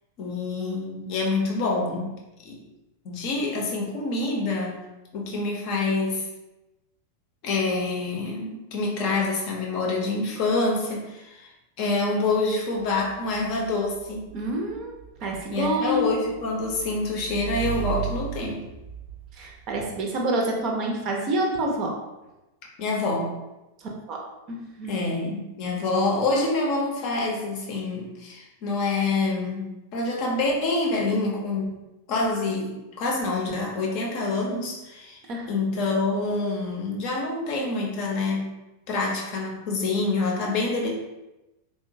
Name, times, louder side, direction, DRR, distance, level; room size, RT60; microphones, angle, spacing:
voice 1, 0.2-2.1 2.4-2.6 3.0-4.8 5.1-6.2 7.4-11.5 11.8-14.3 15.5-18.6 22.8-23.4 24.8-31.8 32.1-35.2 35.5-38.5 38.9-40.9, left 3 dB, 45° left, -1 dB, 0.6 m, -26 dB
Motorcycle / Engine, 12.8-19.9, right 8 dB, 75° right, 0.6 m, -36 dB
voice 2, 14.3-14.9 15.2-16.1 19.3-21.9 23.8-24.2 24.5-25.0 35.3-35.5, right 1 dB, 40° right, 0 dB, 0.6 m, -27 dB
2.9 x 2.1 x 2.6 m, 1.0 s
figure-of-eight pair, 90°, 0 cm